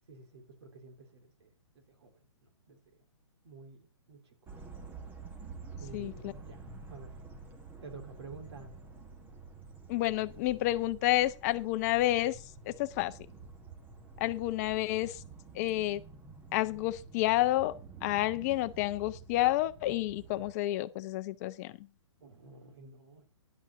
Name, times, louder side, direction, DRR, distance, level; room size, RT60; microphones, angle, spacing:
voice 1, 0.1-2.2 2.7-3.0 3.4-4.3 5.8-6.6 6.9-7.1 7.8-8.8 22.2-23.3, right 3 dB, 60° right, 3.7 m, -50 dB
sound 1, 4.5-20.5, right 4 dB, 10° right, 1.4 m, -49 dB
voice 2, 5.9-6.3 9.9-13.1 14.2-15.2 15.5-16.0 16.5-21.9, left 16 dB, 35° left, 0.8 m, -30 dB
11.0 x 5.5 x 7.2 m
hypercardioid pair, 150°, 15 cm